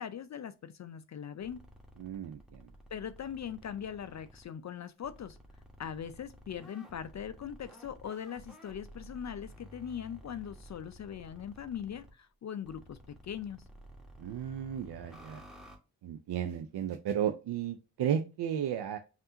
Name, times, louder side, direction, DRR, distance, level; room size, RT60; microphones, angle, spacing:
voice 1, 0.0-1.6 2.9-5.4 5.8-13.6, left 8 dB, 40° left, 0.4 m, -41 dB
sound 1, 1.4-4.5 5.0-12.1 12.6-15.8, equal, ahead, 1.2 m, -53 dB
voice 2, 2.0-2.7 14.2-15.4 16.0-19.0, right 9 dB, 55° right, 0.6 m, -34 dB
5.3 x 2.6 x 2.7 m
hypercardioid pair, 40°, 47 cm